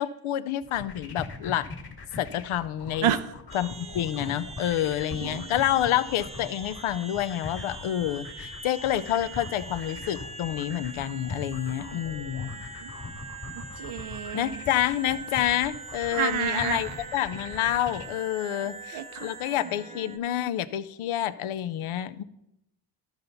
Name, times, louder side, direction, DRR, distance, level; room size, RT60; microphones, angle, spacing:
voice 1, 0.0-1.7 2.2-3.1 3.5-12.5 14.3-22.2, left 12 dB, 75° left, 14 dB, 0.6 m, -28 dB
sound 1, 0.6-18.1, left 3 dB, 45° left, 1.8 m, -41 dB
sound 2, 3.5-20.2, right 3 dB, 15° right, 0.5 m, -43 dB
voice 2, 5.2-5.5 11.9-12.0 12.8-12.9 13.8-14.6 16.1-16.9 18.9-19.3, right 10 dB, 75° right, 11 dB, 0.8 m, -29 dB
13.0 x 5.6 x 4.0 m, 0.85 s
cardioid pair, 105°, 50 cm